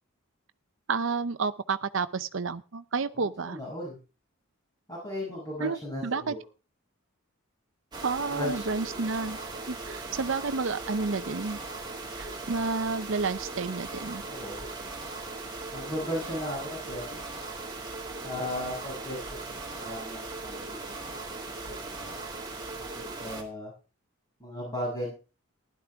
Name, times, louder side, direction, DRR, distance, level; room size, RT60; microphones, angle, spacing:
voice 1, 0.9-3.6 5.6-6.3 8.0-9.4 9.7-11.6 12.2-14.2, right 4 dB, 65° right, 11 dB, 0.7 m, -30 dB
voice 2, 3.1-4.0 4.9-6.4 8.3-8.9 14.3-14.6 15.7-17.2 18.2-19.4 19.6-20.8 21.1-22.2 22.7-23.7 24.4-25.1, left 1 dB, 20° left, -5 dB, 6.5 m, -36 dB
sound 1, 7.9-23.4, right 3 dB, 20° right, 2.2 m, -39 dB
15.5 x 11.5 x 3.5 m, 0.33 s
head